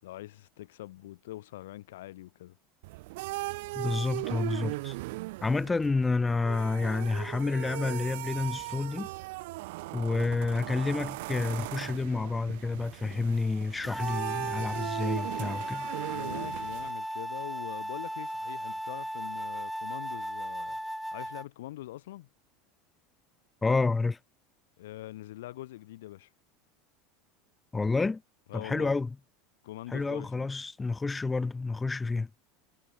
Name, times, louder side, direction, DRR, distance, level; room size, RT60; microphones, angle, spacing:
voice 1, 0.0-2.6 16.1-20.8 21.1-22.3 24.8-26.3 28.5-28.9 29.6-30.5, left 15 dB, 85° left, 6.0 m, -43 dB
sound 1, 2.8-16.9, right 22 dB, 75° right, 7.2 m, -38 dB
voice 2, 3.7-5.0 5.4-9.1 9.9-15.9 23.6-24.2 27.7-28.2 28.5-29.1 29.9-32.3, left 3 dB, 15° left, 7.6 m, -29 dB
sound 2, 13.8-21.5, equal, ahead, 1.9 m, -36 dB
supercardioid pair, 110°, 0 cm